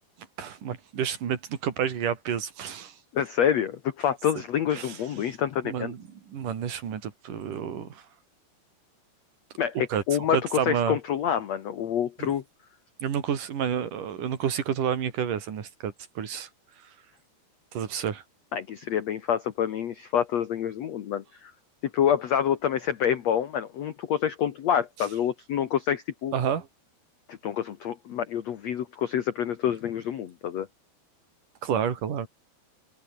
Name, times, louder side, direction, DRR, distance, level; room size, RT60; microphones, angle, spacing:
voice 1, 0.4-3.0 4.7-5.0 5.6-8.0 9.9-10.0 10.3-11.0 12.2-12.3 13.0-16.5 17.7-18.2 26.3-26.7 31.6-32.3, right 8 dB, 50° right, 3.9 m, -30 dB
voice 2, 3.1-5.9 9.6-12.4 18.5-21.5 21.9-26.3 27.3-30.7, left 9 dB, 75° left, 1.5 m, -27 dB
open air
omnidirectional pair, 5.0 m